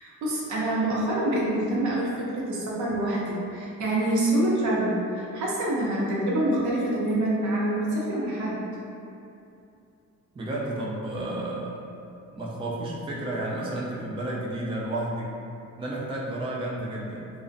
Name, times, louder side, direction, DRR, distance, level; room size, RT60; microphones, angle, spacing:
voice 1, 0.0-8.6, right 1 dB, 70° right, -5 dB, 0.6 m, -26 dB
voice 2, 10.3-11.8 12.3-15.3 15.8-17.3, right 1 dB, 20° right, -5 dB, 0.4 m, -31 dB
2.4 x 2.1 x 2.5 m, 2.6 s
cardioid pair, 90°, 30 cm